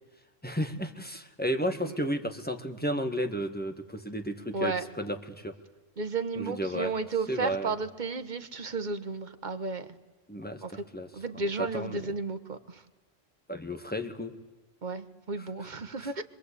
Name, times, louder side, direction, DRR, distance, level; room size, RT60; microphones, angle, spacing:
voice 1, 0.4-5.5 6.4-6.9 7.3-7.7 10.3-11.1 11.3-12.1 13.5-14.3 15.4-15.7 16.0-16.2, equal, 10° left, 6 dB, 1.5 m, -33 dB
voice 2, 6.0-10.0 10.6-10.7 11.1-12.8 14.8-16.2, right 4 dB, 40° right, 9 dB, 1.3 m, -33 dB
26.0 x 23.0 x 8.4 m, 1.2 s
omnidirectional pair, 1.3 m